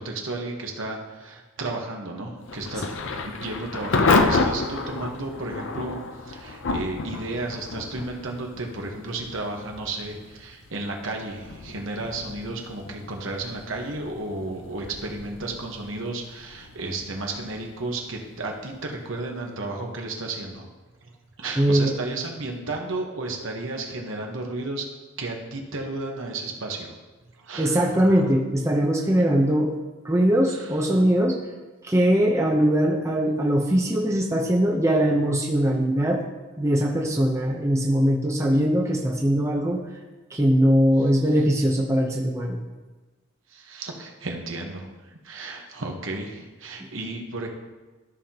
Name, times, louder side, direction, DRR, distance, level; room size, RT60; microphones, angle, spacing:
voice 1, 0.0-2.8 3.2-20.7 21.0-21.1 21.4-24.8 25.2-26.9 27.4-28.2 30.5-30.8 43.5-47.5, right 2 dB, 65° right, 1 dB, 1.2 m, -33 dB
Thunder / Rain, 2.4-19.2, left 3 dB, 60° left, 0.6 m, -30 dB
voice 2, 21.6-21.9 27.6-29.7 30.0-31.4 31.8-36.2 36.6-39.8 40.3-42.6 46.8-46.9, equal, 15° right, -1 dB, 0.7 m, -21 dB
13.5 x 5.7 x 2.9 m, 1.2 s
head